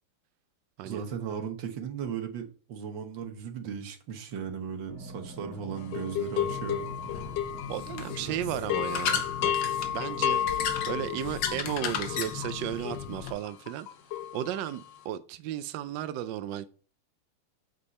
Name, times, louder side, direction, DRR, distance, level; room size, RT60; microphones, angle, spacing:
voice 1, 0.8-6.9 8.2-8.4, right 7 dB, 60° right, 1.8 m, -37 dB
sound 1, 4.9-13.8, right 4 dB, 30° left, 2.4 m, -48 dB
sound 2, 5.9-8.3 8.5-14.9, left 10 dB, 85° left, 0.9 m, -33 dB
sound 3, 6.4-13.3, left 7 dB, 65° left, 1.7 m, -35 dB
voice 2, 7.7-9.5 9.9-10.4 10.9-13.9 14.3-16.7, right 12 dB, 80° right, 1.0 m, -34 dB
8.2 x 5.3 x 4.1 m
omnidirectional pair, 2.4 m